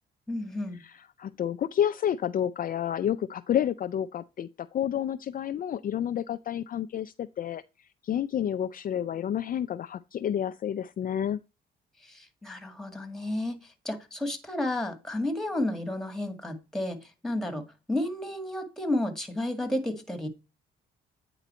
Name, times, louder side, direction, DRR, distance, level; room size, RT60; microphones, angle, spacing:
voice 1, 0.3-0.8 12.0-20.3, left 1 dB, ahead, 1.8 m, -32 dB
voice 2, 1.2-7.6 8.0-11.4, left 10 dB, 45° left, 0.4 m, -29 dB
9.1 x 3.9 x 4.3 m
cardioid pair, 90°, 20 cm